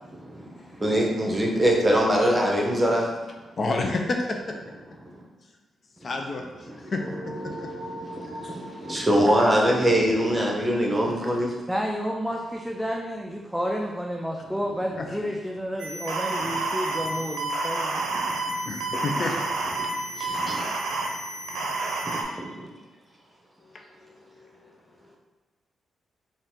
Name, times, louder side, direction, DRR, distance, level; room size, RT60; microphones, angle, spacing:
voice 1, 0.0-3.1 5.1-5.2 7.4-11.5 18.1-18.3 18.9-19.0 19.8-19.9 20.3-20.6 22.0-22.7, equal, 20° right, -1 dB, 0.9 m, -24 dB
voice 2, 3.6-4.6 6.0-6.4 6.9-7.7 9.0-9.1 11.1-11.2 15.0-15.2 18.1-19.4 19.8-20.4 23.7-24.7 25.0-25.2, left 3 dB, 50° left, 3 dB, 0.5 m, -31 dB
sound 1, 6.9-11.7, equal, 75° left, 1.3 m, -43 dB
voice 3, 11.7-18.0, equal, 5° right, -1 dB, 0.4 m, -30 dB
sound 2, 15.8-22.2, right 2 dB, 80° right, 0.5 m, -29 dB
3.9 x 2.5 x 3.6 m, 1.2 s
supercardioid pair, 55°, 0 cm